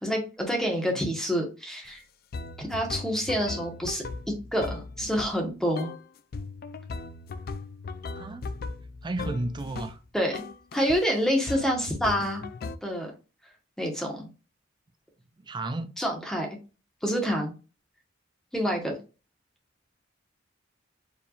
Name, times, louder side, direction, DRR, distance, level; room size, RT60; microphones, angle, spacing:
voice 1, 0.0-2.0 2.6-4.0 4.5-5.9 10.1-10.4 10.7-12.4 12.8-13.1 13.8-14.3 16.0-16.5 17.0-17.5 18.5-19.0, equal, 5° left, 1.2 m, -27 dB
sound 1, 1.8-1.9 2.3-5.4 5.7-6.0 6.3-10.0 10.3-11.0 11.5-12.8, left 3 dB, 50° left, 0.4 m, -38 dB
voice 2, 8.1-8.4 9.0-10.0 15.5-15.9, right 2 dB, 25° right, 0.4 m, -33 dB
4.7 x 3.4 x 2.4 m
head